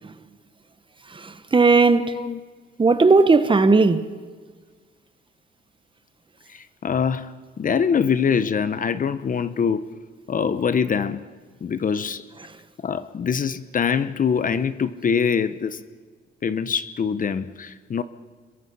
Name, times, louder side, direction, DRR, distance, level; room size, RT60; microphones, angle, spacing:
voice 1, 1.2-2.2 2.8-4.0, right 3 dB, 25° right, 1.3 m, -16 dB
voice 2, 1.9-2.4 6.5-9.9 10.3-11.2 11.6-12.2 12.8-15.8 16.4-18.0, left 6 dB, 45° left, 1.0 m, -24 dB
27.5 x 22.0 x 5.6 m
cardioid pair, 90°, 20 cm